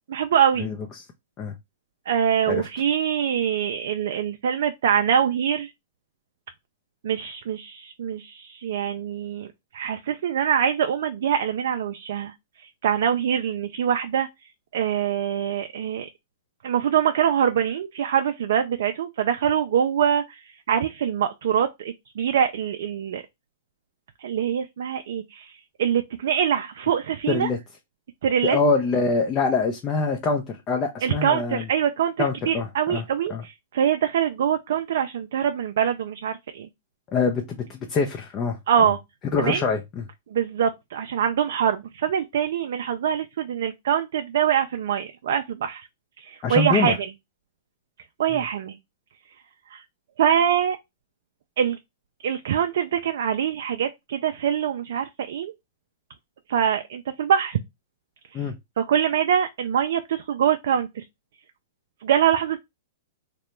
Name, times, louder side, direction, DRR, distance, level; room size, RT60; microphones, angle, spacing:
voice 1, 0.1-0.7 2.1-5.7 7.0-14.3 14.7-16.1 16.6-23.2 24.2-27.5 28.2-28.6 31.0-36.7 38.7-39.0 39.4-39.6 40.3-45.9 46.2-47.1 48.2-48.8 49.7-49.8 50.2-50.8 51.6-51.8 52.2-55.5 56.5-57.6 58.3-58.4 58.8-61.0 62.0-62.6, right 8 dB, 65° right, 0.3 m, -24 dB
voice 2, 27.3-27.6 28.4-31.7 32.2-33.0 33.3-33.4 37.1-37.4 37.7-38.9 39.3-40.0 46.4-47.0 48.3-48.4 58.3-58.6, left 4 dB, 30° left, 0.5 m, -24 dB
2.8 x 2.2 x 3.1 m
hypercardioid pair, 130°, 0 cm